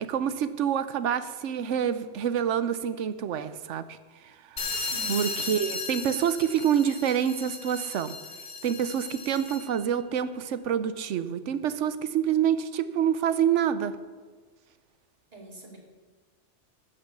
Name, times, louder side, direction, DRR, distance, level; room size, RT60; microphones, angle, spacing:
voice 1, 0.0-4.0 4.2-4.6 5.1-8.2 8.6-14.0, right 9 dB, 85° right, 13 dB, 1.0 m, -27 dB
sound 1, 4.6-9.8, left 4 dB, 45° left, 1.1 m, -36 dB
voice 2, 4.7-5.3 15.3-15.8, right 1 dB, 35° right, -2 dB, 2.5 m, -43 dB
15.0 x 5.6 x 6.8 m, 1.4 s
omnidirectional pair, 1.2 m